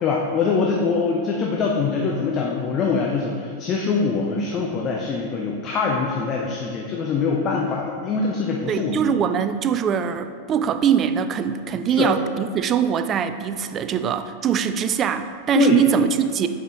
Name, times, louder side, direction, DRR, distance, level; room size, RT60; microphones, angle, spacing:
voice 1, 0.0-9.1 12.0-12.1 15.5-15.8, left 4 dB, 30° left, -1 dB, 0.7 m, -23 dB
voice 2, 8.7-16.5, right 8 dB, 30° right, 10 dB, 0.4 m, -22 dB
7.9 x 4.9 x 3.7 m, 2.3 s
figure-of-eight pair, 90°, 0 cm